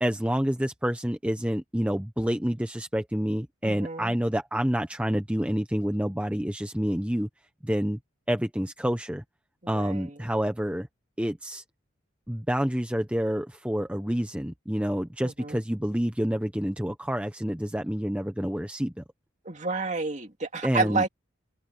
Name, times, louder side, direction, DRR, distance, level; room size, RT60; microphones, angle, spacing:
voice 1, 0.0-7.3 7.6-8.0 8.3-9.2 9.7-10.9 11.2-11.6 12.3-19.0 20.6-21.0, equal, 5° right, 1.0 m, -28 dB
voice 2, 3.6-4.2 9.7-10.1 15.2-15.6 19.4-21.1, right 4 dB, 35° right, 2.4 m, -30 dB
open air
head